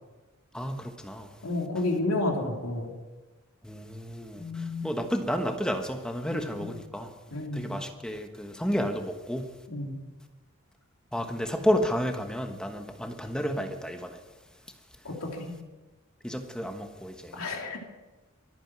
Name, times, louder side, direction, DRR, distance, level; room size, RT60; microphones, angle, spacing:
voice 1, 0.5-1.3 3.6-7.1 7.5-9.5 11.1-14.2 16.2-17.4, equal, 5° left, 1.2 m, -31 dB
voice 2, 1.4-2.9 4.4-4.9 6.3-6.7 7.3-7.8 9.7-10.0 15.0-15.5 17.3-17.8, left 2 dB, 85° left, 2.9 m, -31 dB
24.0 x 9.1 x 6.1 m
head